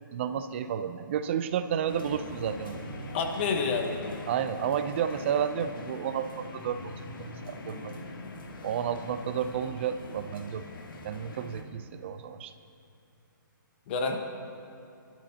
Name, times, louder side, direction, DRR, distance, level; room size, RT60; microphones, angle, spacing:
voice 1, 0.1-2.8 4.3-6.8 7.4-7.9 8.6-10.6 11.0-12.5, right 8 dB, 35° right, 11 dB, 0.6 m, -31 dB
sound 1, 1.9-11.6, left 2 dB, 80° left, 2.0 m, -42 dB
voice 2, 3.1-4.2 13.9-14.2, left 4 dB, 30° left, 4 dB, 1.2 m, -29 dB
23.0 x 12.5 x 2.9 m, 2.8 s
hypercardioid pair, 160°, 11 cm